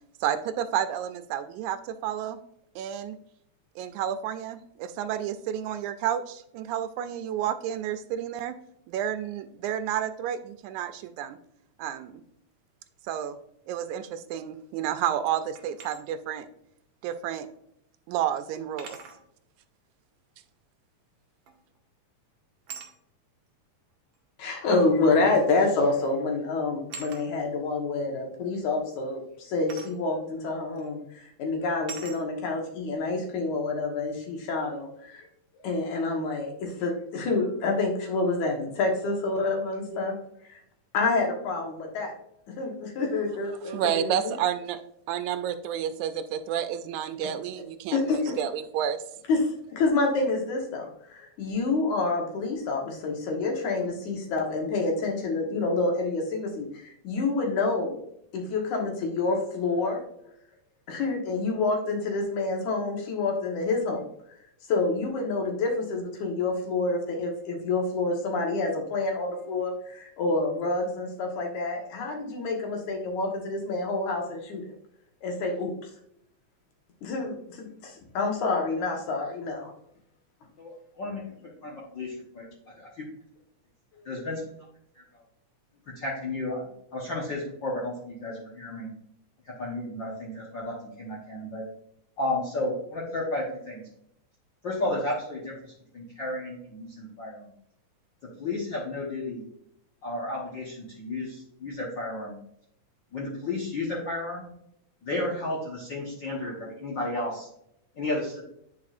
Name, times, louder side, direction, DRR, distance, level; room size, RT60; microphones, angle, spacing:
voice 1, 0.2-2.4 2.8-3.2 3.8-8.6 8.9-11.4 11.8-12.2 13.1-13.4 13.7-16.5 17.0-17.5 18.1-19.0 43.6-44.8 45.1-49.0, right 10 dB, 90° right, 9 dB, 2.0 m, -30 dB
sound 1, 15.6-16.0 17.5-17.6 18.8-19.2 21.5-21.8 22.7-23.0 24.1-24.2 25.5-25.7 26.0-26.3 26.9-27.3 29.7-30.0 30.8-30.9 31.9-32.2, right 5 dB, 70° right, 2.1 m, -42 dB
voice 2, 24.4-35.3 35.6-40.2 40.5-40.6 40.9-42.1 42.6-44.3 47.2-47.3 47.9-48.4 49.3-58.0 58.3-60.0 60.9-64.0 64.7-74.7 75.2-75.7 77.0-79.7 84.0-84.1, left 3 dB, 80° left, 1 dB, 2.8 m, -28 dB
voice 3, 80.6-83.0 84.0-84.4 84.9-85.2 85.9-88.9 89.4-91.7 92.2-93.8 94.6-97.5 98.4-99.4 100.0-102.4 103.1-104.5 105.0-107.5 107.9-108.4, left 2 dB, 55° left, -4 dB, 1.4 m, -33 dB
9.4 x 4.8 x 2.5 m, 0.73 s
omnidirectional pair, 3.3 m